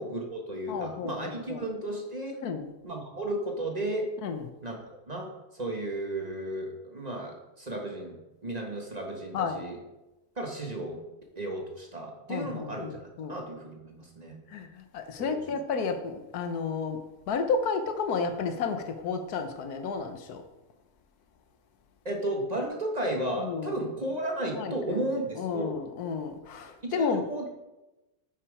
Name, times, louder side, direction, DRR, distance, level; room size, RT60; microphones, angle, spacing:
voice 1, 0.0-2.4 2.8-4.1 4.6-4.7 5.1-5.3 5.5-8.1 8.4-9.8 10.4-11.0 11.3-14.4 15.2-15.4 22.0-25.7 26.8-27.5, right 1 dB, 30° right, 0 dB, 1.4 m, -34 dB
voice 2, 0.7-1.6 2.4-2.7 4.2-4.5 9.3-9.6 12.3-13.4 14.5-20.4 23.4-23.8 24.5-25.0 25.4-27.5, left 5 dB, 85° left, 7 dB, 1.4 m, -32 dB
9.6 x 6.0 x 4.8 m, 1.0 s
omnidirectional pair, 1.6 m